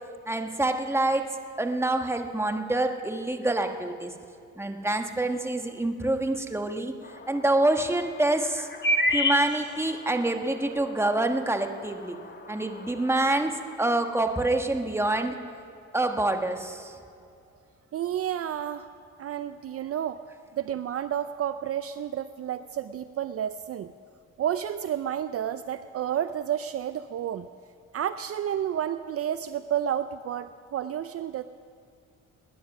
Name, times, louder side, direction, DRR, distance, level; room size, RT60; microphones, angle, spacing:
voice 1, 0.3-1.3 1.6-4.1 4.6-6.9 7.3-8.7 9.1-12.2 12.5-15.4 15.9-17.0, right 2 dB, 10° right, 5 dB, 1.3 m, -26 dB
sound 1, 7.0-13.7, left 1 dB, 35° left, 1.3 m, -32 dB
voice 2, 17.9-18.9 19.2-20.2 20.6-23.9 24.4-27.5 27.9-31.4, right 10 dB, 50° right, 12 dB, 0.5 m, -30 dB
20.5 x 10.0 x 6.0 m, 2.5 s
cardioid pair, 90°, 30 cm